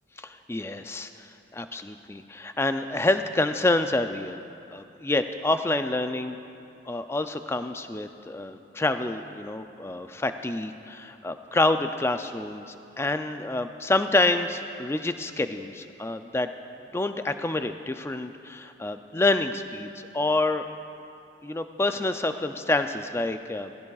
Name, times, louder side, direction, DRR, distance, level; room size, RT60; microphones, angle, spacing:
voice 1, 0.2-4.4 4.7-6.4 6.9-16.5 16.9-20.6 21.4-23.7, left 2 dB, 15° left, 8 dB, 0.3 m, -27 dB
18.0 x 15.5 x 2.4 m, 2.6 s
head